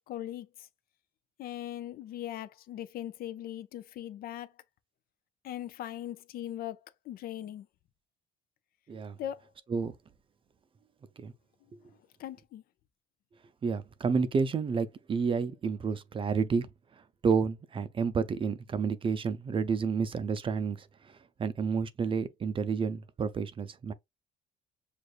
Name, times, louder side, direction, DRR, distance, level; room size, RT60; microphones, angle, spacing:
voice 1, 0.1-0.5 1.4-4.5 5.4-6.8 7.1-7.7 9.2-9.4 12.2-12.6, left 12 dB, 60° left, 0.5 m, -39 dB
voice 2, 13.6-16.7 17.2-21.1 21.4-23.9, right 5 dB, 30° right, 0.5 m, -30 dB
6.4 x 2.5 x 2.4 m
cardioid pair, 110°, 17 cm